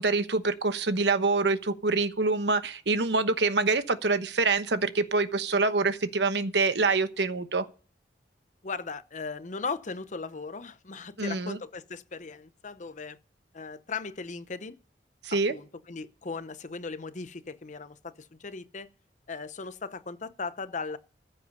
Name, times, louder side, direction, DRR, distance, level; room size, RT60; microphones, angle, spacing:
voice 1, 0.0-7.7 11.2-11.6 15.2-15.5, right 3 dB, 75° right, 1.1 m, -26 dB
voice 2, 8.6-13.2 13.5-14.8 15.3-18.9 19.3-21.0, left 4 dB, 45° left, 0.8 m, -38 dB
14.5 x 7.8 x 5.4 m
head